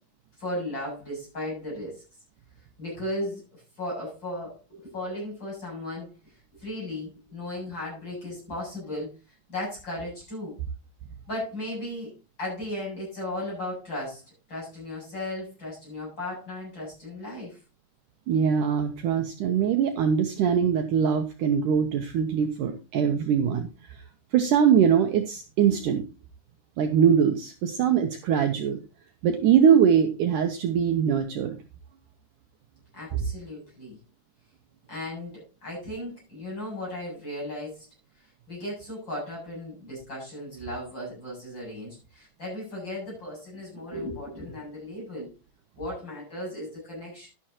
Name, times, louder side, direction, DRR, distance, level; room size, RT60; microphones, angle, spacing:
voice 1, 0.4-2.0 2.8-6.3 6.6-10.6 11.3-12.1 12.4-14.2 14.5-17.6 32.9-34.0 34.9-37.9 38.2-45.3 45.8-47.3, left 1 dB, 25° left, -4 dB, 8.6 m, -36 dB
voice 2, 18.3-23.7 24.3-26.0 26.8-28.8 29.2-31.6, right 8 dB, 80° right, 6 dB, 1.8 m, -22 dB
12.0 x 11.0 x 2.9 m, 0.31 s
omnidirectional pair, 4.8 m